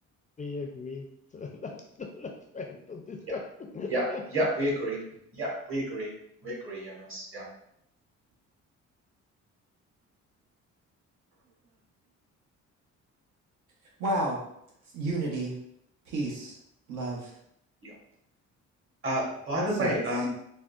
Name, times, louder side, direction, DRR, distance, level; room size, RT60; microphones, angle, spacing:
voice 1, 0.4-1.1 1.3-3.4 3.7-4.2, left 4 dB, 25° left, 2 dB, 0.4 m, -39 dB
voice 2, 4.3-5.0 5.3-6.1 6.4-7.5 17.8-17.9 19.0-20.3, right 1 dB, 45° right, -3 dB, 1.4 m, -30 dB
voice 3, 14.0-14.4 14.9-15.5 16.1-16.5 16.9-17.3 19.8-19.9, right 2 dB, 80° right, -2 dB, 0.9 m, -30 dB
3.5 x 2.1 x 2.4 m, 0.74 s
cardioid pair, 90°, 30 cm